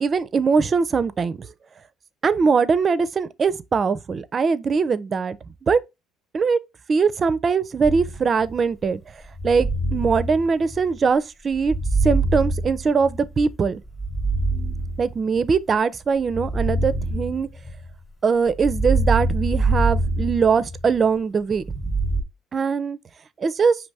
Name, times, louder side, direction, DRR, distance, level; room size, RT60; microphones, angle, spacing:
voice 1, 0.0-1.5 2.2-5.8 6.3-6.6 6.9-9.0 9.4-11.8 12.0-13.8 15.0-17.5 18.2-21.9 22.5-23.0 23.4-23.8, right 5 dB, 35° right, 0.4 m, -21 dB
sound 1, 7.8-8.5 9.3-11.0 11.6-13.4 13.9-15.5 16.3-17.9 18.5-21.0 21.6-22.2, right 2 dB, 15° left, 1.0 m, -24 dB
5.2 x 2.9 x 3.3 m
cardioid pair, 110°, 0 cm